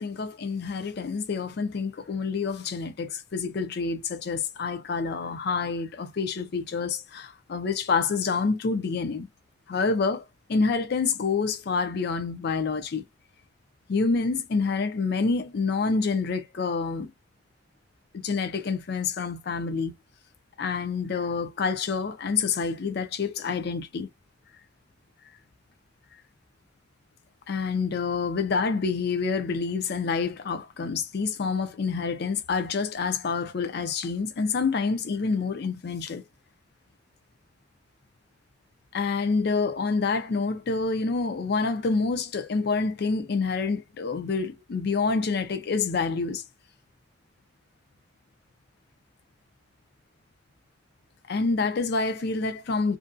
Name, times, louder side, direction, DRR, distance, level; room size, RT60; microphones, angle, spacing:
voice 1, 0.0-9.3 9.7-10.2 10.5-13.0 13.9-17.1 18.1-19.9 20.6-24.1 27.5-36.2 38.9-46.4 51.3-53.0, left 4 dB, 60° left, 0.5 m, -27 dB
2.5 x 2.2 x 2.5 m
head